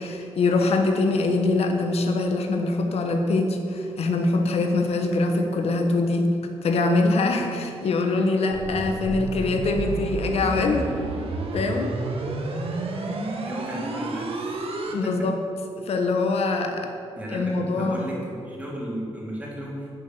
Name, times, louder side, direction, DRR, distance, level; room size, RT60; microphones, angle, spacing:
voice 1, 0.0-6.3 6.6-10.8 11.5-11.9 14.9-15.4 15.9-16.9 17.3-18.1, left 3 dB, 75° left, 4 dB, 1.1 m, -23 dB
sound 1, 8.5-14.9, right 2 dB, 60° right, 1.7 m, -30 dB
voice 2, 10.5-10.8 13.4-14.5 14.9-15.3 17.2-19.9, equal, 15° right, -4 dB, 3.0 m, -35 dB
10.5 x 6.8 x 8.7 m, 2.5 s
wide cardioid pair, 150°, 11 cm